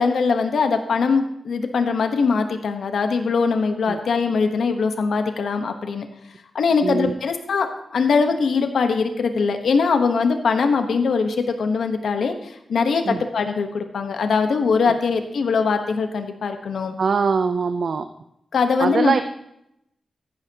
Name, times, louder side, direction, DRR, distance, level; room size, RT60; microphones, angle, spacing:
voice 1, 0.0-6.1 6.5-16.9 18.5-19.1, left 5 dB, 85° left, 6 dB, 1.1 m, -21 dB
voice 2, 6.8-7.1 13.1-13.2 14.9-15.0 17.0-18.1 18.8-19.2, right 5 dB, 60° right, 9 dB, 0.5 m, -22 dB
15.0 x 11.5 x 2.9 m, 0.78 s
wide cardioid pair, 135°, 0 cm